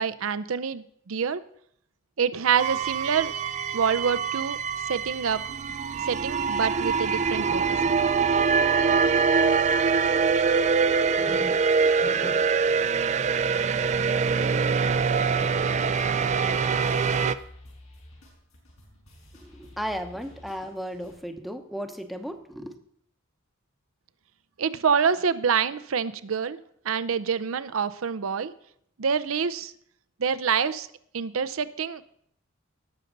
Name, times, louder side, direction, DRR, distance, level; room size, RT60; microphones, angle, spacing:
voice 1, 0.0-1.4 2.2-3.3 3.7-4.6 4.9-5.4 6.0-7.8 24.6-26.6 26.8-28.5 29.0-29.7 30.2-30.9 31.1-32.0, right 6 dB, 80° right, 13 dB, 0.6 m, -26 dB
sound 1, 2.6-17.3, right 5 dB, 35° right, 0.4 m, -24 dB
voice 2, 10.9-12.5 19.4-22.7, equal, ahead, 5 dB, 0.8 m, -36 dB
sound 2, 15.3-21.2, left 1 dB, 80° left, 5.1 m, -51 dB
18.5 x 6.6 x 3.9 m, 0.67 s
head